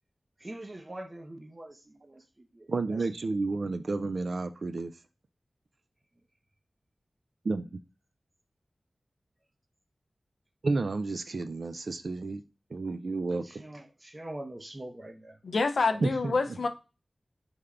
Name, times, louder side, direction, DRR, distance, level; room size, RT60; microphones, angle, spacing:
voice 1, 0.4-2.2 2.5-3.0 13.4-15.4, right 1 dB, 35° right, 0.6 m, -43 dB
voice 2, 2.7-4.9 7.4-7.6 10.6-12.4 12.7-13.6 16.0-16.3, right 3 dB, 75° right, 0.3 m, -31 dB
voice 3, 15.4-16.7, left 3 dB, 85° left, 0.4 m, -27 dB
3.3 x 2.2 x 3.6 m
cardioid pair, 40°, 0 cm